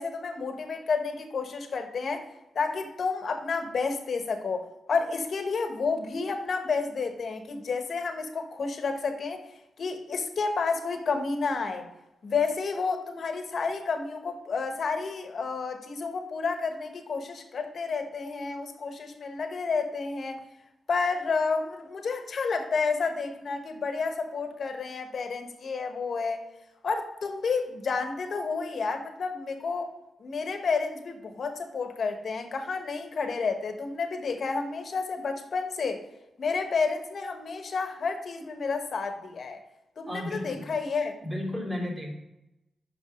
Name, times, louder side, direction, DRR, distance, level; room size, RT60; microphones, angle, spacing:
voice 1, 0.0-2.3 2.5-9.4 9.8-11.9 12.2-20.4 20.9-26.4 26.8-29.9 30.2-36.0 36.4-39.6 40.0-41.2, left 4 dB, 65° left, 6 dB, 1.1 m, -30 dB
voice 2, 40.1-40.7 41.2-42.1, left 1 dB, 35° right, -2 dB, 2.8 m, -33 dB
5.9 x 5.5 x 5.1 m, 0.90 s
cardioid pair, 60°, 0 cm